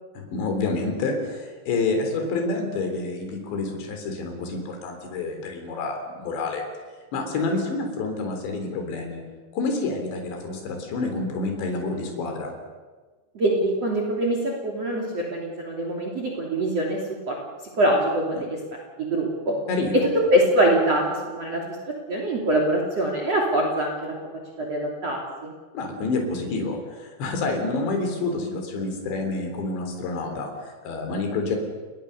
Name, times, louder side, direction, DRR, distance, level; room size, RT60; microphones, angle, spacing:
voice 1, 0.2-6.6 7.1-9.2 9.5-12.5 18.3-18.4 19.7-20.1 25.7-31.6, left 3 dB, 65° left, 4 dB, 5.8 m, -28 dB
voice 2, 13.3-17.4 17.7-18.6 19.0-19.6 20.3-21.6 22.1-24.1 24.6-25.5, right 1 dB, 35° right, 0 dB, 3.5 m, -24 dB
28.5 x 21.0 x 6.7 m, 1.3 s
omnidirectional pair, 5.5 m